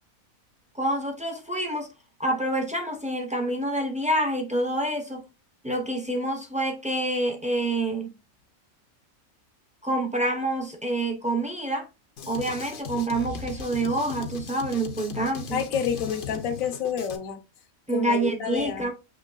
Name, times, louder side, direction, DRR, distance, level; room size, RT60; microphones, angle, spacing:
voice 1, 0.7-1.9 2.2-5.2 5.6-8.1 9.8-11.9 12.3-15.6 17.9-18.9, right 1 dB, 10° right, 0.5 m, -27 dB
Drum kit, 12.2-17.2, left 6 dB, 50° left, 0.7 m, -38 dB
voice 2, 15.5-17.4 17.9-18.9, left 7 dB, 75° left, 1.2 m, -29 dB
7.0 x 3.0 x 2.4 m
omnidirectional pair, 1.5 m